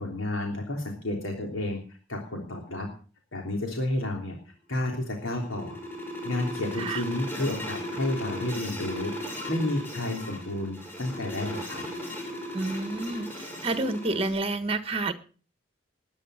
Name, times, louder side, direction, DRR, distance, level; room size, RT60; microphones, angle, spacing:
voice 1, 0.0-1.8 2.1-2.9 3.3-4.4 4.7-5.8 6.2-9.1 9.5-11.8, left 1 dB, 80° left, 1 dB, 3.3 m, -31 dB
sound 1, 4.9-14.3, left 1 dB, 10° left, 6.5 m, -37 dB
voice 2, 12.5-15.1, right 2 dB, 30° right, 11 dB, 1.3 m, -29 dB
20.0 x 9.9 x 6.4 m, 0.41 s
head